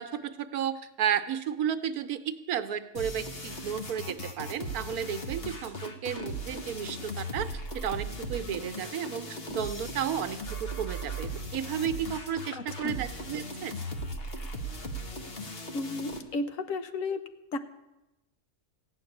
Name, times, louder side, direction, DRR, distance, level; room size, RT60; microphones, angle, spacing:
voice 1, 0.0-13.7, right 9 dB, 80° right, 9 dB, 1.3 m, -33 dB
sound 1, 2.9-16.2, right 1 dB, 45° left, 1.4 m, -38 dB
voice 2, 12.6-13.0 15.7-17.2 17.5-17.6, left 3 dB, 65° left, 9 dB, 1.2 m, -33 dB
15.5 x 6.5 x 9.8 m, 0.99 s
omnidirectional pair, 1.5 m